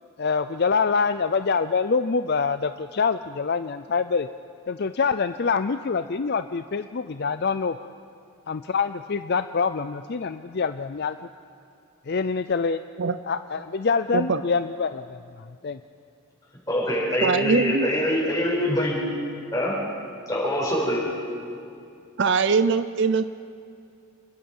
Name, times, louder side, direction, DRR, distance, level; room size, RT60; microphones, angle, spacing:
voice 1, 0.2-4.3 4.7-7.8 8.5-11.2 12.1-12.8 13.3-15.8, left 5 dB, 45° left, 10 dB, 0.4 m, -25 dB
voice 2, 16.7-19.0 19.5-19.8 20.3-21.0, equal, 15° left, -5 dB, 7.0 m, -24 dB
voice 3, 17.2-17.9 22.2-23.2, right 4 dB, 50° right, 12 dB, 0.5 m, -22 dB
28.0 x 21.0 x 5.5 m, 2.5 s
head